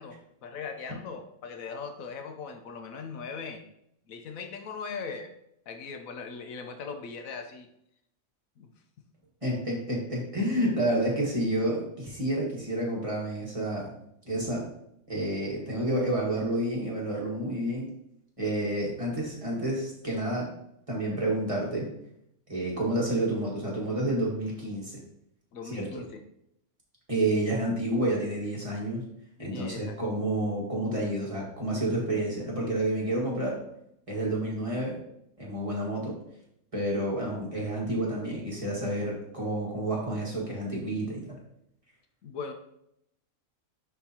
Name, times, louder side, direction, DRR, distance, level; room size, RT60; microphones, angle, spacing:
voice 1, 0.0-3.6 4.1-5.3 5.7-7.7 8.6-8.7 9.4-9.5 25.5-26.1 29.4-30.0 42.2-42.5, left 5 dB, 75° left, 6 dB, 1.1 m, -39 dB
voice 2, 9.4-13.9 14.2-14.6 15.1-17.9 18.4-20.5 20.9-21.9 22.5-25.0 25.7-25.9 27.1-29.0 29.4-33.6 34.1-35.0 35.4-36.1 36.7-41.4, right 1 dB, 25° right, -4 dB, 1.5 m, -29 dB
10.0 x 3.5 x 2.8 m, 0.75 s
omnidirectional pair, 1.5 m